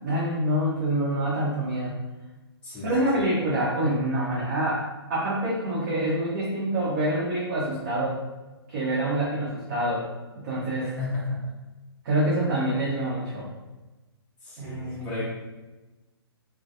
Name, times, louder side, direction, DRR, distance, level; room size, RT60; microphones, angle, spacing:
voice 1, 0.0-1.9 2.8-4.8 5.1-8.1 8.7-10.1 10.4-10.9 12.0-13.5 14.6-15.2, right 1 dB, 40° right, -7 dB, 0.7 m, -26 dB
voice 2, 2.6-3.3 10.8-11.4 14.4-15.2, left 3 dB, 10° left, -10 dB, 0.5 m, -34 dB
2.3 x 2.2 x 2.7 m, 1.1 s
figure-of-eight pair, 125°, 14 cm